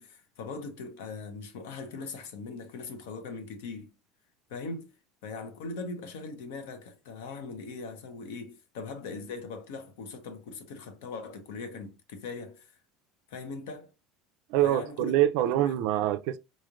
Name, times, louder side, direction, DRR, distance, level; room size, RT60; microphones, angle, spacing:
voice 1, 0.0-3.9 4.5-4.9 5.2-12.8 13.3-13.9 14.6-15.2 15.5-15.9, left 4 dB, 90° left, 0.9 m, -40 dB
voice 2, 14.5-16.4, right 12 dB, 60° right, 0.4 m, -25 dB
4.2 x 3.1 x 2.5 m
cardioid pair, 170°, 0 cm